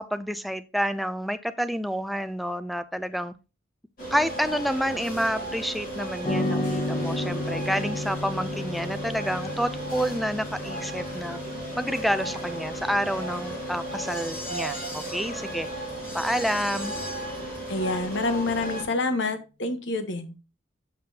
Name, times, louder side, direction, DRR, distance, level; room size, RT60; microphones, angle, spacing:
voice 1, 0.0-3.3 4.1-11.4 11.7-15.7 16.1-17.0, equal, ahead, 11 dB, 0.3 m, -29 dB
Industrial sounds, 4.0-18.8, right 1 dB, 45° left, 2.8 m, -35 dB
sound 1, 6.2-14.8, left 1 dB, 25° left, 1.1 m, -34 dB
voice 2, 17.7-20.3, left 2 dB, 60° left, 9 dB, 1.0 m, -27 dB
7.7 x 5.1 x 2.7 m, 0.30 s
head